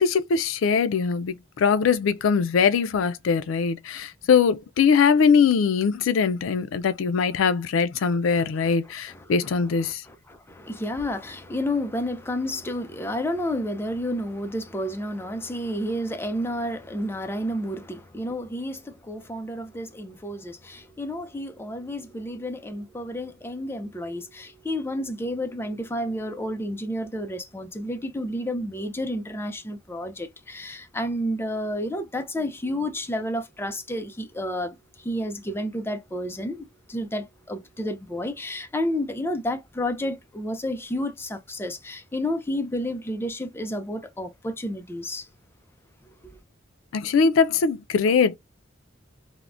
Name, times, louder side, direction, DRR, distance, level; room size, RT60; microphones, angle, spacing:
voice 1, 0.0-10.0 46.9-48.3, left 6 dB, 85° left, 0.4 m, -21 dB
voice 2, 8.0-8.7 9.1-45.3, left 1 dB, 10° left, 0.4 m, -31 dB
3.5 x 2.1 x 2.4 m
head